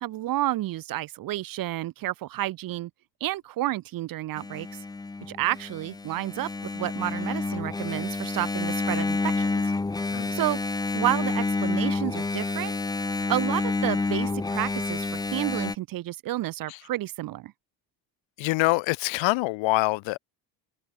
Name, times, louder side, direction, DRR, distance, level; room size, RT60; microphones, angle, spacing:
voice 1, 0.0-2.9 3.2-4.7 5.3-9.5 10.3-10.6 10.9-12.7 13.3-17.5, right 15 dB, 50° right, 0.5 m, -30 dB
Engine, 4.4-15.7, left 3 dB, 10° left, 0.4 m, -29 dB
voice 2, 18.4-20.2, left 22 dB, 85° left, 1.1 m, -25 dB
open air
supercardioid pair, 80°, 44 cm